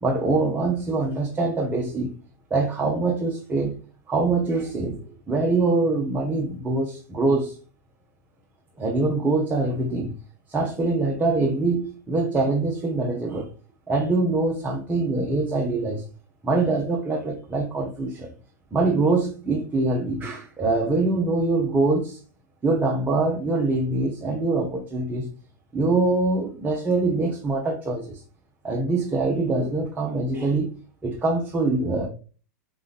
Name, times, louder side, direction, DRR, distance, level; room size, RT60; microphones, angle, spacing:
voice 1, 0.0-2.1 2.5-3.8 4.1-5.0 5.3-7.5 8.8-10.2 10.5-13.5 13.9-16.0 16.4-18.3 18.7-22.2 22.6-25.3 25.7-28.2 28.6-30.7 31.0-32.1, right 3 dB, 15° right, 1.2 m, -24 dB
5.1 x 3.7 x 2.4 m
figure-of-eight pair, 100°, 9 cm